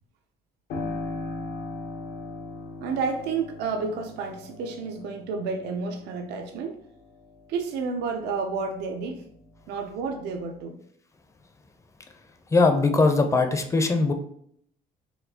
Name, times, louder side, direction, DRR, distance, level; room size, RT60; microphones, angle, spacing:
Piano, 0.7-9.1 9.5-10.6, left 2 dB, 85° left, 0.8 m, -39 dB
voice 1, 2.8-6.8 7.5-9.2 9.7-10.8, right 4 dB, 80° right, 4 dB, 0.5 m, -30 dB
voice 2, 12.5-14.1, left 3 dB, 15° left, 6 dB, 0.4 m, -20 dB
4.3 x 2.3 x 2.7 m, 0.67 s
cardioid pair, 110°, 17 cm